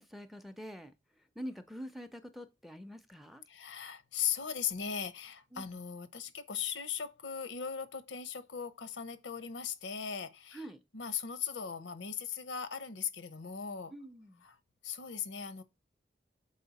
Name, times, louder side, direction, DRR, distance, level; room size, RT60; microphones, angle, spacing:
voice 1, 0.0-3.4 5.5-5.7 10.5-10.8 13.9-14.4, equal, ahead, 0.5 m, -46 dB
voice 2, 3.5-10.6 10.9-13.9 14.4-14.6 14.8-15.6, left 7 dB, 90° left, 0.7 m, -38 dB
6.5 x 4.3 x 4.0 m
head